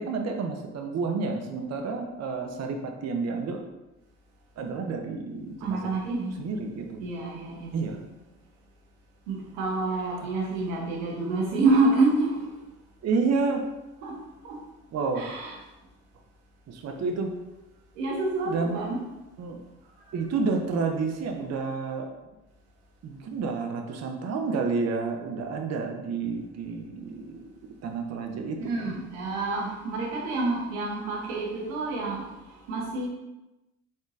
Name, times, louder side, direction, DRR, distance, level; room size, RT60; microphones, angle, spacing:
voice 1, 0.0-3.6 4.6-5.9 6.4-7.0 7.7-8.0 10.2-10.5 13.0-13.6 14.9-15.3 16.7-17.3 18.4-18.8 19.4-19.6 20.1-22.1 23.0-27.5 27.8-28.9, right 4 dB, 40° right, 4 dB, 0.6 m, -30 dB
voice 2, 5.6-6.4 7.0-7.9 9.3-12.5 14.0-14.2 14.4-14.6 15.1-15.5 16.9-17.0 18.0-19.0 28.6-32.2 32.7-33.1, right 3 dB, 85° right, -1 dB, 0.9 m, -27 dB
3.9 x 3.6 x 2.5 m, 1.0 s
hypercardioid pair, 55°, 39 cm